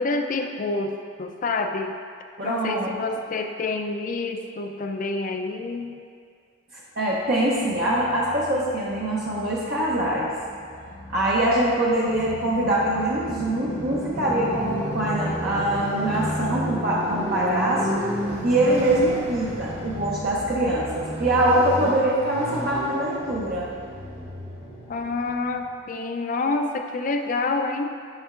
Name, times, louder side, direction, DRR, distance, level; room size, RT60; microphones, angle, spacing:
voice 1, 0.0-2.0 2.4-5.9 15.9-16.0 24.9-27.9, left 3 dB, 45° left, 5 dB, 0.4 m, -27 dB
voice 2, 2.4-3.0 6.7-10.3 11.1-17.9 18.4-23.7, right 1 dB, 50° right, -6 dB, 0.7 m, -23 dB
Motorcycle, 7.5-25.7, equal, 35° right, 1.1 m, -33 dB
9.7 x 5.4 x 2.5 m, 2.2 s
head